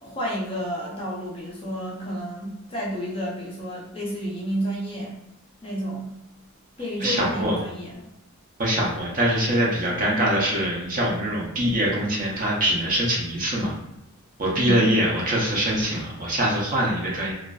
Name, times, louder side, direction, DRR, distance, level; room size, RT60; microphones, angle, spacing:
voice 1, 0.0-5.2 5.6-6.1 6.8-7.9 14.5-14.8, equal, 25° left, -5 dB, 0.5 m, -30 dB
voice 2, 7.0-7.6 8.6-13.7 14.4-17.3, right 1 dB, 35° right, -3 dB, 0.6 m, -23 dB
2.5 x 2.2 x 2.2 m, 0.92 s
head